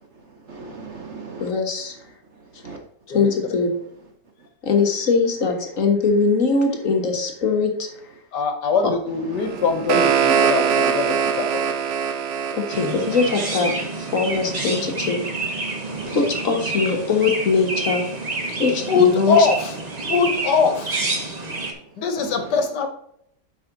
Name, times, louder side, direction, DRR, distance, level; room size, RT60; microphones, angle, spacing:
voice 1, 0.1-1.5 2.3-2.8 9.2-10.1 14.2-14.5 15.8-16.3 21.8-21.9 22.2-22.6, right 4 dB, 50° right, 3 dB, 1.0 m, -38 dB
voice 2, 1.4-1.9 3.1-3.7 4.6-7.9 12.5-15.3 16.1-18.1 18.6-19.4, left 4 dB, 50° left, 3 dB, 1.7 m, -21 dB
voice 3, 3.1-3.7 8.3-11.7 18.9-19.8 20.1-21.0 22.0-22.9, left 5 dB, 75° left, 7 dB, 1.7 m, -22 dB
sound 1, 9.5-14.5, right 7 dB, 70° right, 0.6 m, -23 dB
Chirp tweet, 12.7-21.7, right 3 dB, 25° right, 1.1 m, -28 dB
7.7 x 5.5 x 3.9 m, 0.71 s
omnidirectional pair, 1.8 m